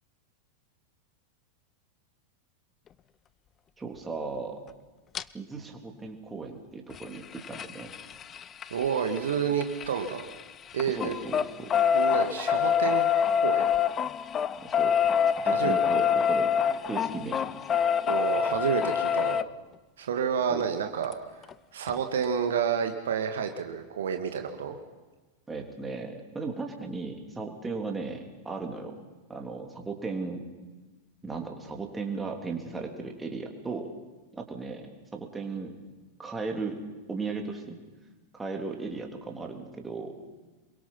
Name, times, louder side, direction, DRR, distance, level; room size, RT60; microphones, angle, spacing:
voice 1, 3.8-4.6 5.3-7.9 10.9-11.8 14.6-15.0 15.4-16.5 16.9-17.4 20.5-20.7 25.5-29.0 29.3-30.4 31.2-33.9 34.3-35.7 36.2-36.8 37.1-37.8 38.3-40.1, right 4 dB, 10° right, 3 dB, 3.4 m, -36 dB
sound 1, 5.1-5.2 6.9-10.4 10.7-19.4 21.1-21.2 21.5-21.6 21.9-22.0, left 8 dB, 25° left, 0.6 m, -26 dB
voice 2, 8.7-10.3 10.7-11.1 11.9-13.1 13.4-13.7 15.4-15.8 18.0-19.4 20.0-24.8, right 7 dB, 60° right, 6 dB, 1.8 m, -29 dB
27.0 x 23.0 x 5.8 m, 1.3 s
figure-of-eight pair, 90°, 0 cm